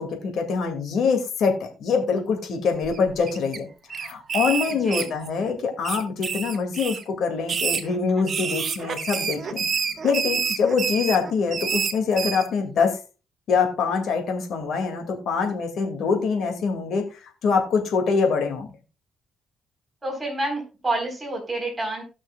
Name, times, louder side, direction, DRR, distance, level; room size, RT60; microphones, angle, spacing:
voice 1, 0.0-3.7 3.9-9.6 10.0-13.0 13.5-18.7, left 5 dB, 70° left, 4 dB, 2.1 m, -24 dB
sound 1, 2.8-3.6 3.9-5.5 5.8-7.0 7.4-12.5, right 6 dB, 50° right, 1.2 m, -28 dB
voice 2, 4.7-5.1 20.0-22.0, right 2 dB, 20° right, 1 dB, 3.9 m, -28 dB
18.0 x 6.2 x 2.3 m, 0.31 s
cardioid pair, 90°, 0 cm